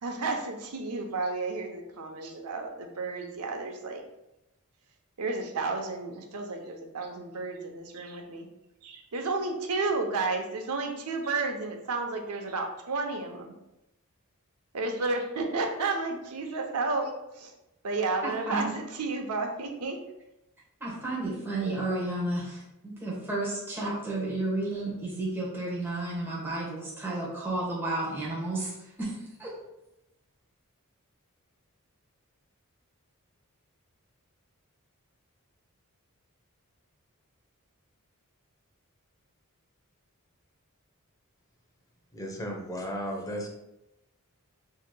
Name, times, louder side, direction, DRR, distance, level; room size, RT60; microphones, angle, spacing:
voice 1, 0.0-4.0 5.2-8.5 8.8-13.5 14.7-17.5 17.8-20.0, right 3 dB, 85° right, 3 dB, 0.7 m, -32 dB
voice 2, 18.2-18.7 20.8-28.7 29.0-29.6, right 2 dB, 10° right, -7 dB, 1.2 m, -32 dB
voice 3, 42.1-43.5, equal, 15° left, 1 dB, 0.7 m, -34 dB
7.1 x 2.9 x 2.2 m, 0.90 s
head